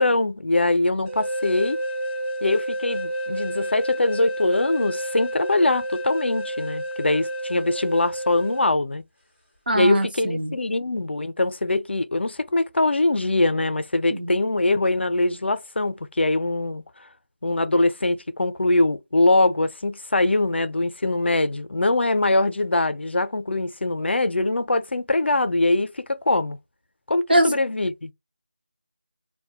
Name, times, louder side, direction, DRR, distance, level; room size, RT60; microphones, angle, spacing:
voice 1, 0.0-1.8 2.4-9.0 9.7-16.8 17.4-26.6 27.1-28.1, left 2 dB, 75° left, 0.4 m, -22 dB
sound 1, 1.1-8.7, right 1 dB, 10° left, 0.4 m, -30 dB
voice 2, 9.7-10.5 14.1-14.3 27.3-27.5, right 1 dB, 55° right, 0.6 m, -22 dB
2.1 x 2.1 x 2.8 m
figure-of-eight pair, 180°, 6 cm